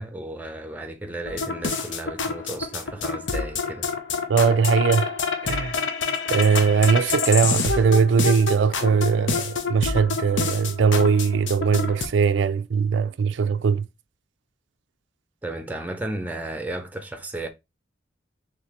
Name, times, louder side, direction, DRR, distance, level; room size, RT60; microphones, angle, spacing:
voice 1, 0.0-3.9 15.4-17.5, right 2 dB, 10° right, 0.5 m, -34 dB
sound 1, 1.2-12.1, left 4 dB, 75° left, 0.7 m, -27 dB
voice 2, 4.3-5.2 5.5-5.8 6.3-13.9, right 6 dB, 75° right, 0.4 m, -20 dB
4.2 x 3.3 x 3.0 m
head